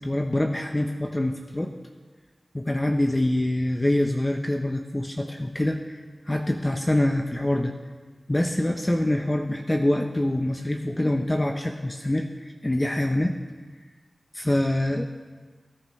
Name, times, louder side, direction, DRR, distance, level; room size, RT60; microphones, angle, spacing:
voice 1, 0.0-1.7 2.5-6.0 6.3-7.7 8.3-13.4 14.3-15.1, left 1 dB, 20° left, 3 dB, 0.8 m, -25 dB
22.5 x 10.5 x 3.2 m, 1.4 s
cardioid pair, 50°, 0 cm